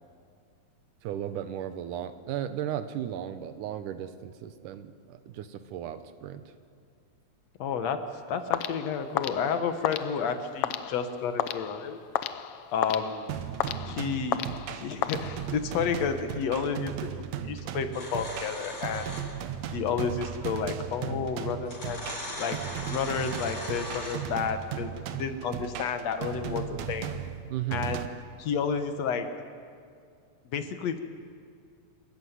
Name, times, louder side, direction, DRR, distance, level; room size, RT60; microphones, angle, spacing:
voice 1, 1.0-6.4 27.5-27.9, right 10 dB, 85° right, 11 dB, 2.6 m, -35 dB
voice 2, 7.6-8.0 8.3-12.0 12.7-13.3 13.9-14.4 14.7-19.1 19.7-22.0 22.4-22.6 22.9-27.1 27.7-28.0 28.4-29.3 30.5-31.0, left 6 dB, 65° left, 8 dB, 2.2 m, -31 dB
sound 1, 8.5-15.8, left 11 dB, 90° left, 1.3 m, -34 dB
sound 2, 13.3-28.1, right 9 dB, 70° right, 2.1 m, -36 dB
sound 3, 17.9-19.5 20.8-20.9 21.6-24.4, left 1 dB, 40° left, 6.6 m, -39 dB
27.0 x 14.0 x 9.5 m, 2.3 s
omnidirectional pair, 3.5 m